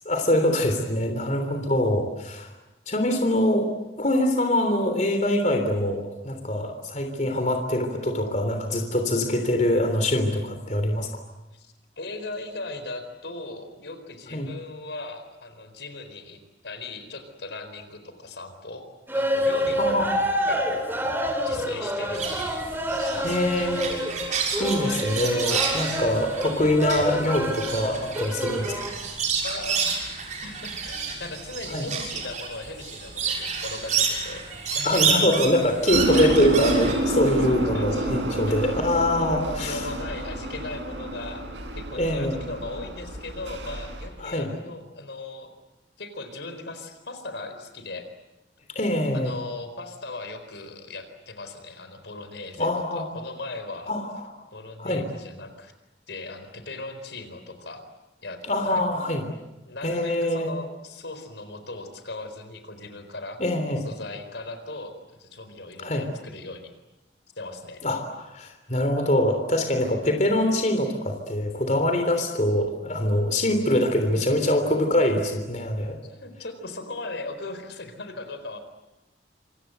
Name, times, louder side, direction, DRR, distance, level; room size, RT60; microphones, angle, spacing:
voice 1, 0.0-2.5 2.9-3.7 4.0-11.1 14.3-14.5 19.8-20.2 23.2-24.1 24.6-28.8 31.7-31.9 34.8-39.8 41.9-42.4 44.2-44.5 48.7-49.3 52.6-53.1 53.9-54.1 54.8-55.1 58.5-59.3 59.8-60.5 63.4-63.8 65.8-66.1 67.8-68.0 68.3-76.0, left 1 dB, 40° left, 5 dB, 3.4 m, -24 dB
voice 2, 1.4-1.7 11.5-18.8 19.1-19.9 20.5-20.9 21.4-23.8 29.2-34.4 34.7-35.3 36.1-36.3 36.7-37.1 37.5-38.1 38.5-38.8 39.1-41.5 41.7-45.5 46.0-48.0 49.1-53.9 54.5-55.7 56.1-57.8 58.2-59.0 59.7-63.4 63.8-66.7 67.4-67.8 76.0-78.6, left 2 dB, 75° left, 8 dB, 4.3 m, -38 dB
sound 1, 19.1-28.9, equal, 10° right, 3.8 m, -28 dB
sound 2, 22.1-36.9, right 5 dB, 45° right, 6.6 m, -29 dB
sound 3, 35.9-44.0, right 1 dB, 85° right, 6.5 m, -29 dB
27.5 x 27.0 x 8.1 m, 0.98 s
head